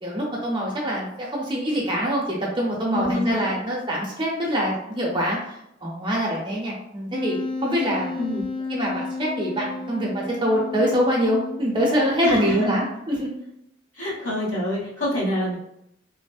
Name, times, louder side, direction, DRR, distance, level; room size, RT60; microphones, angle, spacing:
voice 1, 0.0-5.4 5.8-7.4 7.6-8.2 8.7-13.3, equal, 25° right, -3 dB, 0.6 m, -24 dB
voice 2, 2.9-3.5 8.2-8.5 12.2-12.6 13.9-15.6, left 1 dB, 90° left, -6 dB, 1.3 m, -26 dB
Wind instrument woodwind instrument, 7.1-12.8, left 3 dB, 25° left, 0.3 m, -32 dB
3.3 x 2.0 x 2.3 m, 0.79 s
head